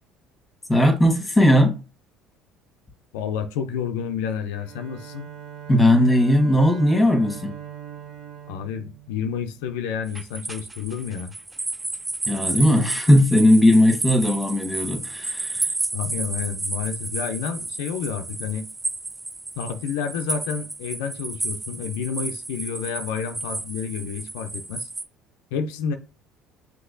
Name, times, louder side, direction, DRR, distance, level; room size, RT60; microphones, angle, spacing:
voice 1, 0.7-1.8 5.7-7.6 12.3-15.6, left 1 dB, 10° left, 1.2 m, -18 dB
voice 2, 3.1-5.3 8.5-11.3 15.9-18.6 19.6-24.9 25.5-26.0, left 7 dB, 85° left, 0.4 m, -30 dB
Bowed string instrument, 4.5-9.7, right 9 dB, 75° right, 0.9 m, -40 dB
sound 1, 10.1-25.0, right 2 dB, 15° right, 0.5 m, -32 dB
5.9 x 2.9 x 2.5 m
supercardioid pair, 80°, 0 cm